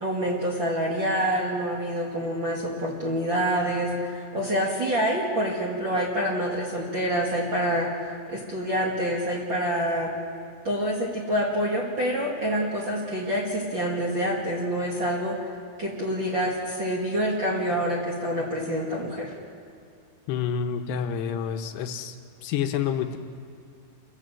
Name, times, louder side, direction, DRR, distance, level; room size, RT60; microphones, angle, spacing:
voice 1, 0.0-7.9 8.3-10.1 10.6-15.4 15.8-19.3, equal, 40° right, -3 dB, 2.0 m, -27 dB
voice 2, 20.3-22.2 22.4-23.2, left 8 dB, 75° left, 6 dB, 3.0 m, -28 dB
27.0 x 18.0 x 7.7 m, 2.3 s
omnidirectional pair, 5.1 m